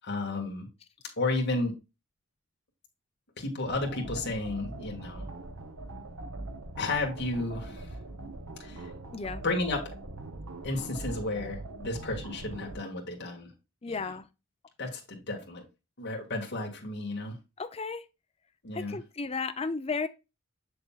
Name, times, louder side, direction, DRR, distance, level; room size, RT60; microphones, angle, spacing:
voice 1, 0.0-0.7 1.2-1.7 3.4-5.3 6.8-8.0 8.6-8.9 9.4-9.9 10.6-13.5 13.9-14.1 14.8-15.6 16.0-17.4 18.6-19.0, left 2 dB, 55° left, 1.8 m, -32 dB
sound 1, 3.6-12.8, right 2 dB, 75° right, 0.9 m, -42 dB
voice 2, 9.1-9.4 13.8-14.3 17.6-18.1 18.7-20.1, left 4 dB, 30° left, 0.5 m, -34 dB
7.0 x 6.6 x 2.3 m
head